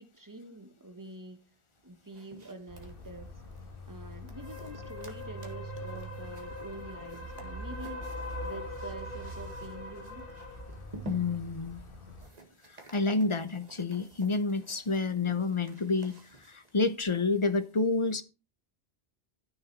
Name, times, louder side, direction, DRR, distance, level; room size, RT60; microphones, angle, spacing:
voice 1, 0.0-1.4 1.8-3.3 3.9-10.3, right 2 dB, 20° right, 1.4 m, -46 dB
sound 1, 1.7-17.0, right 2 dB, 40° right, 2.0 m, -53 dB
sound 2, 2.7-12.3, left 1 dB, 55° left, 2.1 m, -41 dB
voice 2, 11.0-11.8 12.7-18.2, left 3 dB, 30° left, 0.8 m, -29 dB
13.0 x 6.6 x 4.6 m
omnidirectional pair, 1.1 m